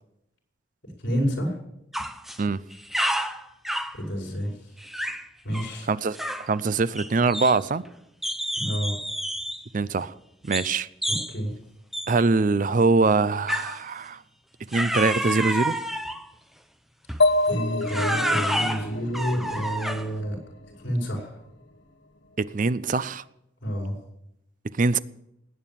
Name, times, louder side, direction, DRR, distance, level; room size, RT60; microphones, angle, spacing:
voice 1, 1.0-1.6 3.9-4.5 5.4-5.9 8.6-8.9 11.1-11.5 17.5-20.4 20.8-21.4 23.6-23.9, equal, 65° left, 1 dB, 5.4 m, -29 dB
sound 1, 1.9-2.4 2.7-4.0 4.8-5.3 5.5-5.7 6.1-6.5 6.9-7.9 8.2-9.6 10.5-10.7 11.0-11.3 11.9-12.1 13.5-13.8 14.7-16.3 17.1-17.3 17.8-20.2, equal, ahead, 0.7 m, -29 dB
voice 2, 5.9-7.8 9.7-10.1 10.5-10.9 12.1-14.2 14.7-15.8 22.4-23.2 24.8-25.0, right 3 dB, 45° right, 16 dB, 0.5 m, -23 dB
sound 2, 17.2-20.9, left 2 dB, 80° left, 1.4 m, -27 dB
19.0 x 8.9 x 7.4 m, 0.81 s
head